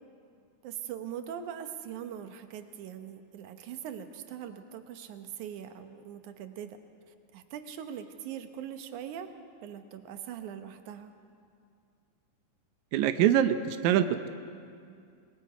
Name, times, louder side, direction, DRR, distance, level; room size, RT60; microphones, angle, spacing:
voice 1, 0.6-6.8 7.3-9.3 9.6-11.1, right 9 dB, 70° right, 7 dB, 2.1 m, -41 dB
voice 2, 12.9-14.3, right 10 dB, 85° right, 9 dB, 1.6 m, -24 dB
27.5 x 21.5 x 5.1 m, 2.3 s
omnidirectional pair, 4.4 m